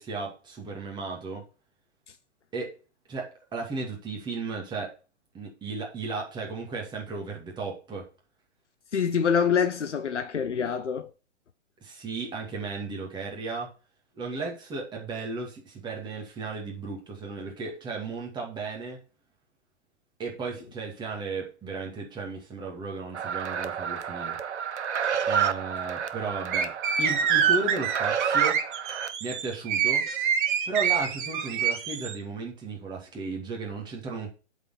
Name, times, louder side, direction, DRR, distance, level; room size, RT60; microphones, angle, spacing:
voice 1, 0.0-1.4 2.5-2.7 3.1-4.9 5.3-8.1 11.8-13.7 14.1-19.0 20.2-24.4 25.2-28.6 29.2-30.1 30.7-34.3, right 4 dB, 10° right, 2.3 m, -35 dB
voice 2, 8.9-11.1, left 7 dB, 90° left, 0.8 m, -25 dB
sound 1, 23.1-29.1, right 7 dB, 75° right, 1.0 m, -30 dB
sound 2, 26.5-32.1, right 8 dB, 45° right, 1.5 m, -26 dB
8.1 x 4.6 x 5.8 m
hypercardioid pair, 135°, 35 cm